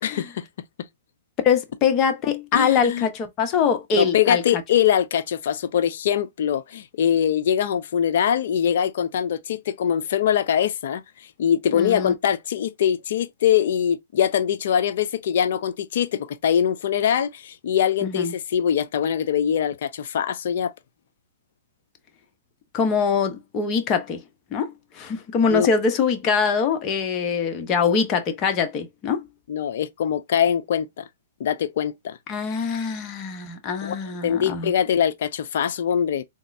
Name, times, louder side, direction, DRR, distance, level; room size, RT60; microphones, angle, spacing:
voice 1, 0.0-0.5 2.5-3.1 3.9-20.7 25.5-25.7 29.5-31.0 31.4-32.2 33.8-34.0 34.2-36.2, left 9 dB, 65° left, 0.4 m, -23 dB
voice 2, 1.4-4.4 11.7-12.1 18.0-18.3 22.7-24.2 24.5-29.2 32.3-34.7, left 6 dB, 35° left, 0.9 m, -23 dB
3.6 x 3.0 x 2.6 m
hypercardioid pair, 125°, 0 cm